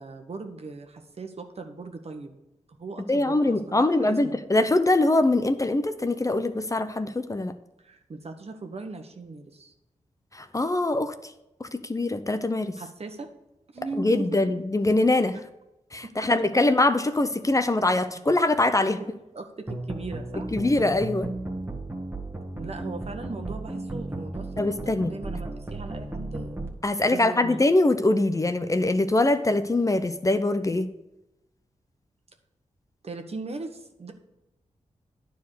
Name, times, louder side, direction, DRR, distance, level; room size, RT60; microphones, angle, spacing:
voice 1, 0.0-2.4 2.8-4.4 7.8-9.7 12.8-13.3 13.7-14.4 16.0-16.3 18.1-18.2 18.8-19.1 19.3-20.5 22.5-26.8 27.1-27.6 33.0-34.1, right 3 dB, 55° right, 5 dB, 1.2 m, -39 dB
voice 2, 3.1-7.5 10.3-11.3 11.6-12.7 14.0-15.4 15.9-19.0 20.5-21.3 24.6-25.1 26.8-30.9, left 2 dB, 25° left, 10 dB, 0.6 m, -23 dB
sound 1, 19.7-26.7, right 2 dB, 20° right, 1.6 m, -34 dB
10.0 x 4.7 x 6.6 m, 0.91 s
cardioid pair, 70°, 13 cm